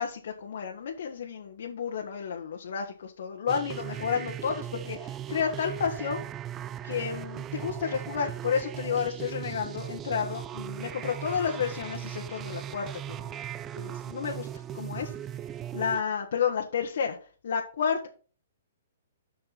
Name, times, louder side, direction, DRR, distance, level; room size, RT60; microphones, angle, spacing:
voice 1, 0.0-6.2 6.8-13.4 13.7-15.1 15.7-17.2 17.4-18.1, left 7 dB, 65° left, 2 dB, 1.4 m, -31 dB
sound 1, 3.5-16.0, right 10 dB, 20° right, 0.4 m, -38 dB
6.9 x 5.7 x 5.8 m, 0.40 s
hypercardioid pair, 130°, 0 cm